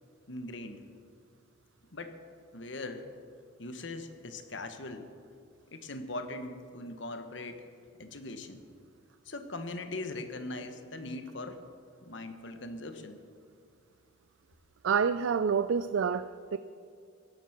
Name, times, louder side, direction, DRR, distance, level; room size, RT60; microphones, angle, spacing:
voice 1, 0.3-0.8 1.9-2.2 2.5-3.1 3.6-5.1 5.7-7.7 8.0-8.6 9.2-11.6 12.0-13.2, left 2 dB, 65° left, 8 dB, 1.3 m, -40 dB
voice 2, 14.8-16.6, right 6 dB, 75° right, 12 dB, 0.4 m, -28 dB
16.0 x 12.0 x 6.0 m, 2.3 s
head